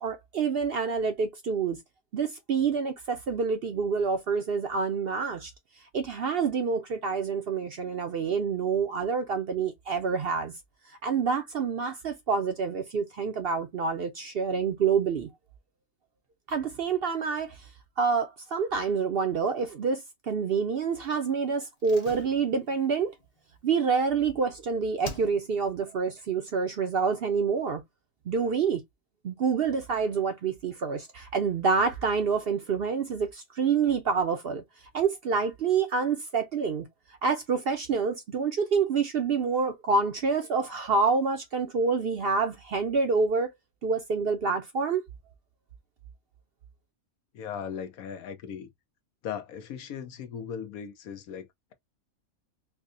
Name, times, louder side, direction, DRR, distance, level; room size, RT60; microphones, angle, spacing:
voice 1, 0.0-1.8 2.1-5.5 5.9-10.5 11.0-15.3 16.5-17.6 18.0-23.1 23.6-27.8 28.3-28.8 29.2-34.6 34.9-36.8 37.2-43.5 43.8-45.0, right 5 dB, 60° right, 0.7 m, -27 dB
Slam, 21.8-24.6 25.0-25.8 26.0-26.1, left 2 dB, 35° left, 0.8 m, -45 dB
voice 2, 47.3-48.7 49.2-51.7, left 8 dB, 80° left, 1.2 m, -38 dB
4.6 x 2.1 x 2.5 m
omnidirectional pair, 1.5 m